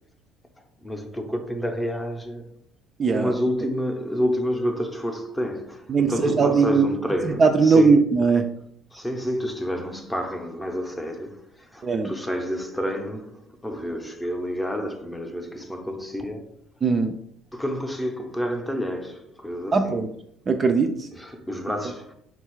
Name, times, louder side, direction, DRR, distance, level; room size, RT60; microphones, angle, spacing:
voice 1, 0.8-2.5 3.1-8.1 8.9-16.5 17.5-20.0 21.1-22.1, equal, 5° left, 0.6 m, -29 dB
voice 2, 3.0-3.3 5.9-6.9 7.2-8.5 11.8-12.1 16.8-17.1 19.7-20.1 20.5-21.1, right 4 dB, 30° right, 0.3 m, -19 dB
3.9 x 2.3 x 4.5 m
cardioid pair, 120°, 0 cm